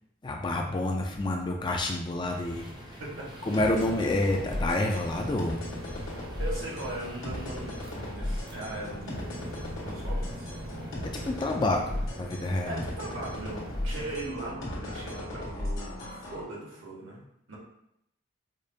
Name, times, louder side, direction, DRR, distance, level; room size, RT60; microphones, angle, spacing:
voice 1, 0.2-3.0 3.4-5.6 11.2-12.8, left 2 dB, 20° left, 1 dB, 0.3 m, -28 dB
sound 1, 2.2-14.2, equal, 20° right, 0.6 m, -44 dB
sound 2, 3.5-16.4, left 1 dB, 75° left, 1.2 m, -36 dB
voice 2, 6.4-9.3 9.8-10.6 12.6-17.6, right 2 dB, 75° right, -4 dB, 1.2 m, -39 dB
5.0 x 2.2 x 2.7 m, 0.77 s
head